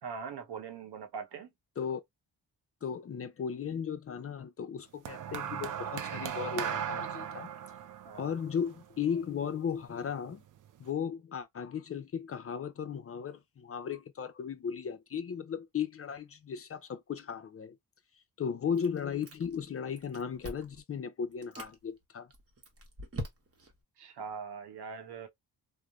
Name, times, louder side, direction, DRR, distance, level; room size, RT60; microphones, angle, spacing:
voice 1, 0.0-1.5 8.0-8.3 24.0-25.3, right 6 dB, 80° right, 0.8 m, -42 dB
voice 2, 2.8-7.5 8.1-10.4 10.8-17.8 18.4-22.3, left 7 dB, 35° left, 0.4 m, -36 dB
sound 1, 5.1-9.5 10.4-10.7, right 9 dB, 55° right, 0.4 m, -37 dB
Chewing mastication, 18.7-19.7 20.0-20.8 21.3-21.7 22.3-23.8, right 1 dB, 35° right, 0.9 m, -43 dB
3.1 x 2.0 x 2.3 m
cardioid pair, 90°, 40 cm